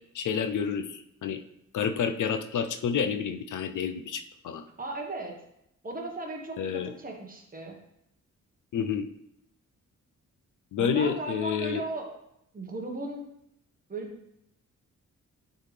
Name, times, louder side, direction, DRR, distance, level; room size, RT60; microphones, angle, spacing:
voice 1, 0.1-1.4 1.7-4.6 6.6-6.9 8.7-9.1 10.7-11.8, left 7 dB, 75° left, 7 dB, 0.6 m, -29 dB
voice 2, 4.8-5.4 5.8-7.8 10.8-12.2 12.5-13.3 13.9-14.2, right 2 dB, 25° right, 1 dB, 1.3 m, -36 dB
11.0 x 3.9 x 3.3 m, 0.78 s
wide cardioid pair, 130°, 31 cm